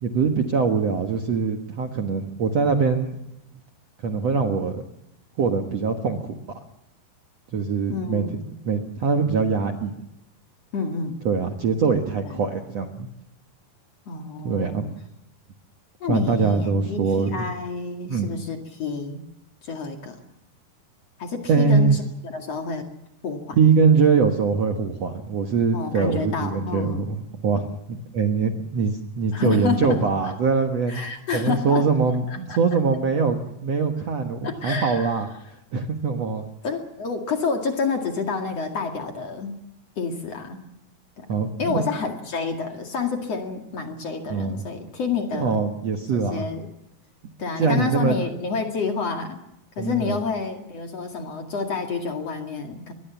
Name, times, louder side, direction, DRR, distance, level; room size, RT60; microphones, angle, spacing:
voice 1, 0.0-3.2 4.0-4.8 5.4-6.3 7.5-8.2 8.7-9.9 11.3-13.1 14.4-15.0 16.1-17.5 18.1-18.3 21.5-22.0 23.6-27.2 27.4-31.1 31.3-35.3 35.7-36.5 41.3-41.8 44.3-44.6 45.3-46.5 47.6-48.1 49.8-50.2, right 5 dB, 55° right, 5 dB, 2.0 m, -22 dB
voice 2, 7.9-8.5 10.7-11.2 12.3-12.4 14.1-14.9 16.0-19.2 19.6-20.2 21.2-22.9 23.2-23.6 25.7-27.1 29.3-30.3 30.9-31.9 32.5-32.6 34.4-35.2 36.6-39.5 40.0-40.6 41.2-41.3 41.6-45.6 46.1-46.7 47.4-49.4 49.8-52.9, left 5 dB, 45° left, 4 dB, 2.8 m, -29 dB
24.0 x 21.0 x 7.1 m, 0.84 s
omnidirectional pair, 4.6 m